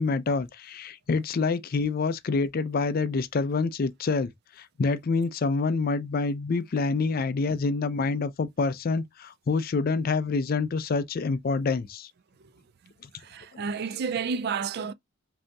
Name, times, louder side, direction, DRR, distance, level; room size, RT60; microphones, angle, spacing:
voice 1, 0.0-4.3 4.6-12.1 13.5-13.6, left 4 dB, 45° left, 0.4 m, -27 dB
voice 2, 13.2-14.9, right 6 dB, 50° right, 0.3 m, -30 dB
5.2 x 2.7 x 2.2 m
head